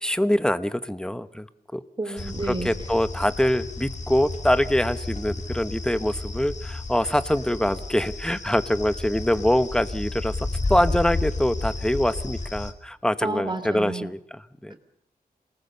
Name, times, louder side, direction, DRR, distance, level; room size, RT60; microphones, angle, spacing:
voice 1, 0.0-1.5 1.7-1.8 2.5-14.7, left 1 dB, 5° left, 13 dB, 1.0 m, -24 dB
voice 2, 2.0-2.7 13.2-14.1 14.7-14.8, right 2 dB, 30° right, 8 dB, 3.0 m, -30 dB
sound 1, 2.2-12.7, left 2 dB, 45° left, 2.2 m, -32 dB
27.5 x 19.5 x 6.8 m, 0.69 s
wide cardioid pair, 100°, 16 cm